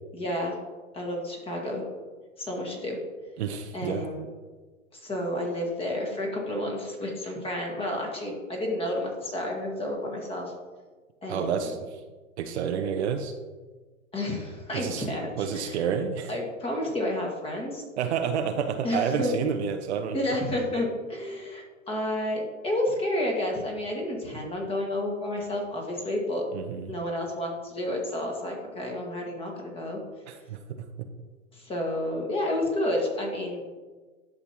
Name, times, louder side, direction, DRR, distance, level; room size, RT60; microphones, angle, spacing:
voice 1, 0.1-0.6 0.9-1.8 2.4-3.0 3.7-4.3 4.9-10.5 11.2-11.7 14.1-15.8 16.3-17.8 18.8-19.3 20.1-26.4 26.9-30.0 31.5-33.6, left 1 dB, 15° left, 0 dB, 1.8 m, -30 dB
voice 2, 3.4-4.0 11.3-12.0 12.4-13.3 14.7-15.1 15.4-16.3 18.0-20.2 26.5-26.9 30.3-30.6 31.0-31.1, right 7 dB, 55° right, 6 dB, 0.8 m, -29 dB
11.0 x 6.5 x 2.9 m, 1.3 s
hypercardioid pair, 130°, 41 cm